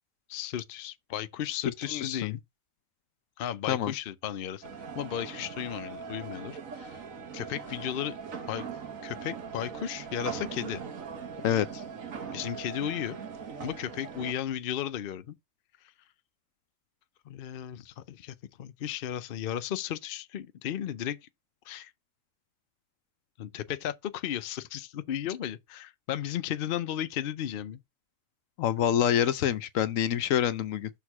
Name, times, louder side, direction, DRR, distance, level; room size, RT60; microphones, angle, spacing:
voice 1, 0.3-2.4 3.4-4.7 4.9-7.0 7.3-8.2 8.5-8.6 9.0-10.8 12.3-13.2 13.6-15.4 17.3-21.2 21.7-21.9 23.4-27.8, left 10 dB, 55° left, 0.7 m, -35 dB
voice 2, 1.9-2.4 3.7-3.9 11.4-11.8 28.6-30.9, left 10 dB, 75° left, 1.0 m, -26 dB
sound 1, 4.6-14.3, right 6 dB, 80° right, 1.6 m, -40 dB
6.4 x 3.6 x 5.8 m
omnidirectional pair, 1.4 m